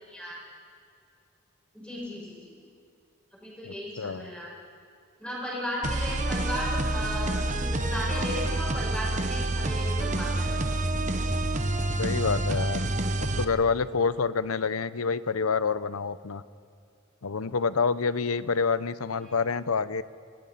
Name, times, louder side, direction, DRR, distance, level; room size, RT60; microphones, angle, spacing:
voice 1, 1.7-2.5 3.4-4.5 5.2-10.6, left 1 dB, 5° left, -5 dB, 6.7 m, -35 dB
voice 2, 3.7-4.3 12.0-12.9 13.2-16.4 17.2-20.0, left 5 dB, 90° left, 15 dB, 0.7 m, -27 dB
sound 1, 5.8-13.4, right 2 dB, 35° right, 1.1 m, -28 dB
29.0 x 19.0 x 5.8 m, 2.4 s
head